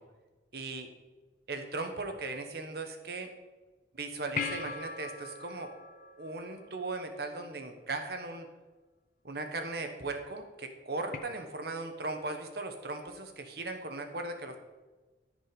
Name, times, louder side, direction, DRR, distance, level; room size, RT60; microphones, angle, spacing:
voice 1, 0.5-0.9 1.5-3.3 4.0-5.7 6.2-8.5 9.2-14.6, right 3 dB, 60° right, 6 dB, 1.2 m, -38 dB
sound 1, 4.4-7.1 11.1-11.2, left 4 dB, 45° left, 0.8 m, -39 dB
13.5 x 5.4 x 5.3 m, 1.2 s
head